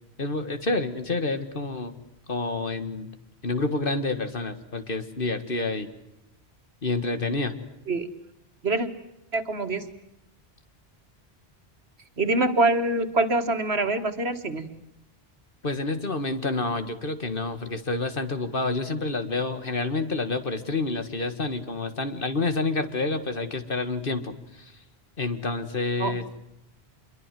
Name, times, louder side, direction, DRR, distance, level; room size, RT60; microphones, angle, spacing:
voice 1, 0.2-2.0 2.3-3.1 3.4-5.9 6.8-7.5 15.6-24.7 25.2-26.2, left 3 dB, 55° left, 9 dB, 2.1 m, -28 dB
voice 2, 9.3-9.8 12.2-14.7 26.0-26.2, right 2 dB, 75° right, 9 dB, 2.2 m, -24 dB
27.0 x 22.5 x 7.7 m, 0.85 s
omnidirectional pair, 1.1 m